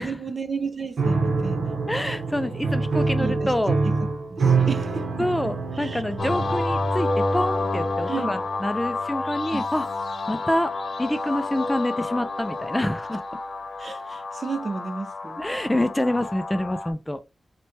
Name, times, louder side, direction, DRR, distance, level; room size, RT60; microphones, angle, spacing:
voice 1, 0.0-1.8 3.2-3.5 3.8-3.9 4.3-6.0 8.1-8.4 9.5-9.7 13.8-15.4, right 4 dB, 45° right, 0.5 m, -33 dB
Piano, 1.0-6.9, right 4 dB, 85° right, 0.8 m, -25 dB
voice 2, 1.9-3.8 5.2-9.9 10.3-10.7 11.0-13.2 15.4-17.2, left 1 dB, 10° left, 0.3 m, -27 dB
sound 1, 6.2-16.9, left 2 dB, 60° left, 0.8 m, -29 dB
4.0 x 2.2 x 3.1 m
wide cardioid pair, 115°, 0 cm